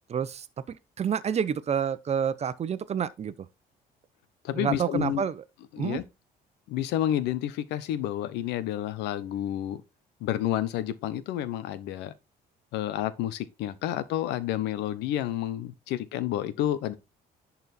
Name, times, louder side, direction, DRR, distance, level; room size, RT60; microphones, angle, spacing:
voice 1, 0.1-3.3 4.5-5.3 5.8-6.0, right 8 dB, 40° right, 0.9 m, -29 dB
voice 2, 4.4-5.2 5.7-6.0 6.7-9.8 10.2-12.1 12.7-16.9, left 12 dB, 90° left, 1.0 m, -30 dB
10.5 x 4.4 x 4.3 m
cardioid pair, 110°, 17 cm